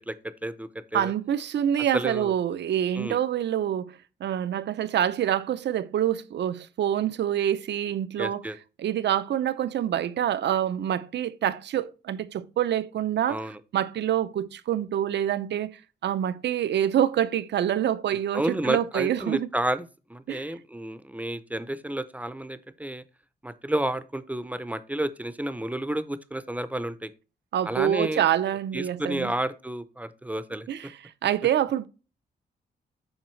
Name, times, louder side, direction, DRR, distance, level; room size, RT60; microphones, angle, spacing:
voice 1, 0.4-1.1 1.9-2.3 2.9-3.2 8.2-8.6 13.3-13.6 18.3-19.8 20.1-23.0 23.4-27.1 27.7-28.2 28.7-30.7, right 1 dB, 10° right, 0.4 m, -31 dB
voice 2, 0.9-8.4 8.8-13.4 13.7-15.7 16.0-19.5 20.3-20.5 27.5-29.3 30.7-31.9, right 10 dB, 90° right, 0.6 m, -26 dB
7.3 x 5.0 x 3.1 m
wide cardioid pair, 155°, 17 cm